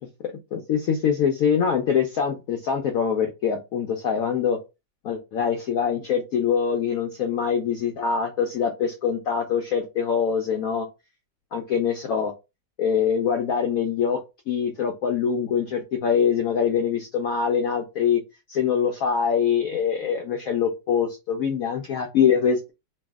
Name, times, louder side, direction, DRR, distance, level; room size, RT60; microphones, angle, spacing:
voice 1, 0.5-4.6 5.0-10.9 11.5-12.3 12.8-14.2 14.5-18.2 18.5-22.7, left 7 dB, 70° left, 4 dB, 0.8 m, -24 dB
3.1 x 2.7 x 3.5 m, 0.26 s
omnidirectional pair, 2.0 m